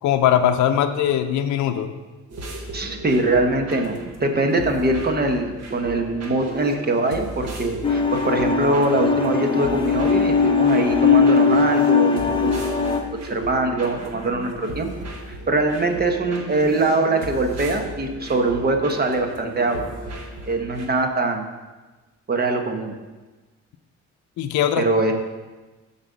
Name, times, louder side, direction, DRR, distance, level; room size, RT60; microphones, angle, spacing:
voice 1, 0.0-1.9 24.4-24.8, left 10 dB, 70° left, 6 dB, 0.6 m, -20 dB
sound 1, 2.3-20.9, right 2 dB, 60° right, 1.3 m, -35 dB
voice 2, 2.7-12.7 13.3-14.9 15.3-19.8 20.5-21.5 22.3-22.9 24.8-25.1, right 2 dB, 30° right, 4 dB, 1.0 m, -22 dB
sound 2, 7.8-13.0, left 5 dB, 15° left, 1.0 m, -19 dB
7.4 x 4.1 x 6.3 m, 1.2 s
cardioid pair, 90°, 30 cm